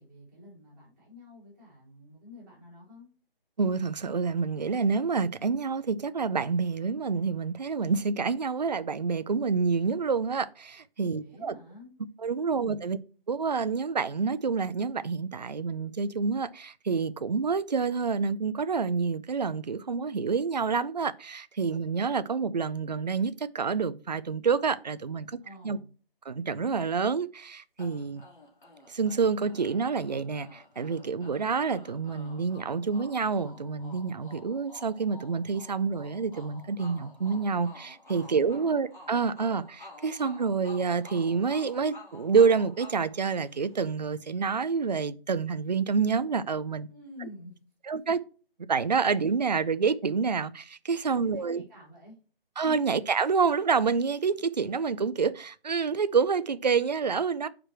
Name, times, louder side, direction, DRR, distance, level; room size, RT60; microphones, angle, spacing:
voice 1, 0.0-3.1 11.2-11.9 12.6-12.9 25.4-25.9 38.4-38.7 46.9-47.5 47.9-48.0 51.2-52.2 52.6-52.8, left 2 dB, 20° right, 3.4 m, -49 dB
voice 2, 3.6-11.5 12.2-13.0 13.3-25.3 25.6-25.8 26.3-28.2 28.9-46.9 47.9-48.2 48.7-51.6 52.6-57.5, right 5 dB, 45° right, 0.4 m, -28 dB
sound 1, 27.8-44.0, left 2 dB, 55° left, 2.9 m, -51 dB
6.1 x 5.0 x 4.5 m
figure-of-eight pair, 165°, 29 cm